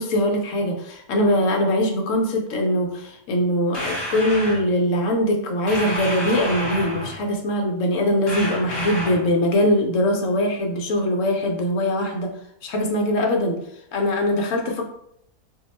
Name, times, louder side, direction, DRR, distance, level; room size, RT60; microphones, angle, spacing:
voice 1, 0.0-12.3 12.6-13.6 13.9-14.8, left 1 dB, 65° left, 2 dB, 0.8 m, -22 dB
sound 1, 3.7-4.6 5.7-7.2 8.3-9.3, equal, 20° left, 1.0 m, -29 dB
2.7 x 2.1 x 3.9 m, 0.73 s
omnidirectional pair, 1.6 m